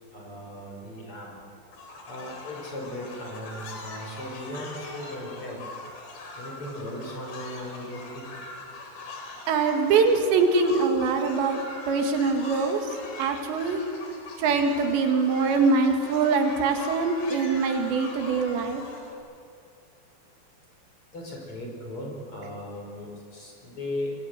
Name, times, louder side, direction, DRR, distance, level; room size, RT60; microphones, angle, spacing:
voice 1, 0.1-1.3 2.1-5.6 6.4-8.4 21.1-24.2, left 1 dB, 30° left, 0 dB, 5.9 m, -37 dB
sound 1, 1.7-19.2, left 3 dB, 70° left, 5.7 m, -42 dB
voice 2, 9.5-11.6 11.9-13.8 14.4-18.8, right 4 dB, 85° right, 4 dB, 4.2 m, -23 dB
25.0 x 23.5 x 8.1 m, 2.5 s
omnidirectional pair, 5.0 m